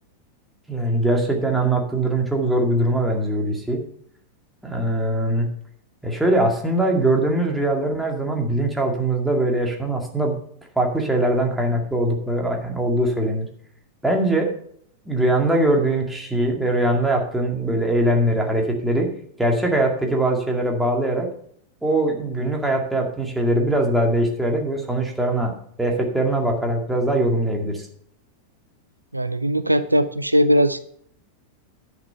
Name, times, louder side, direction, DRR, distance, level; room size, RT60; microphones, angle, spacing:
voice 1, 0.7-3.8 4.6-5.5 6.0-10.4 10.8-13.5 14.0-14.5 15.1-19.1 19.4-21.3 21.8-25.5 25.8-27.9, right 1 dB, 5° right, 1 dB, 2.1 m, -21 dB
voice 2, 29.1-30.8, equal, 85° right, 13 dB, 0.4 m, -19 dB
10.5 x 6.1 x 5.5 m, 0.64 s
figure-of-eight pair, 90°, 0 cm